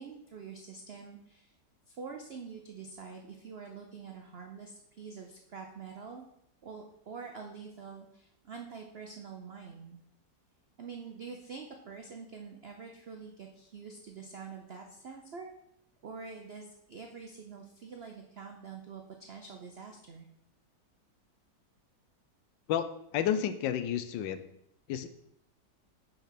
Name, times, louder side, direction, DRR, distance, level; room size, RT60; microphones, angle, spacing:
voice 1, 0.0-1.5 1.9-6.2 6.6-10.0 10.8-15.5 16.0-20.3, right 5 dB, 75° right, 3 dB, 0.5 m, -46 dB
voice 2, 22.7-24.4 24.9-25.1, left 9 dB, 85° left, 11 dB, 1.3 m, -31 dB
5.8 x 4.4 x 5.8 m, 0.77 s
omnidirectional pair, 1.9 m